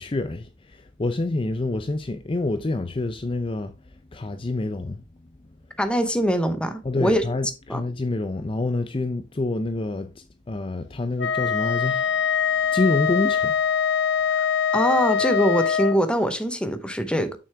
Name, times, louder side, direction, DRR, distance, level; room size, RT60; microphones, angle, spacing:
voice 1, 0.0-3.7 4.1-5.0 6.8-12.2 12.6-13.6, left 2 dB, 30° left, 0.5 m, -27 dB
voice 2, 5.8-7.2 7.7-7.8 14.7-17.4, equal, 5° left, 0.8 m, -23 dB
Wind instrument woodwind instrument, 11.2-16.0, left 7 dB, 85° left, 0.7 m, -23 dB
6.7 x 6.1 x 3.4 m
head